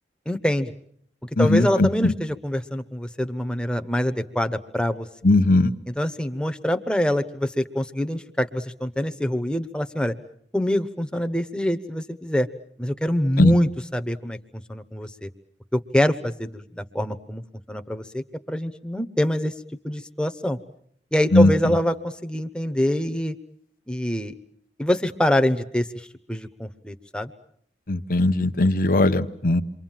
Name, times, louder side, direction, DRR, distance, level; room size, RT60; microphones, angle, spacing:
voice 1, 0.3-0.7 1.4-5.1 5.9-10.1 10.5-12.5 12.8-14.4 14.7-15.3 15.7-17.4 17.7-19.5 19.8-20.6 21.1-23.3 23.9-24.3 24.8-25.9 26.3-27.3, equal, 5° left, 8 dB, 1.0 m, -25 dB
voice 2, 1.4-2.1 5.2-5.7 13.4-13.5 21.3-21.5 27.9-29.6, left 2 dB, 50° left, 10 dB, 1.1 m, -18 dB
28.5 x 24.0 x 7.5 m, 0.66 s
head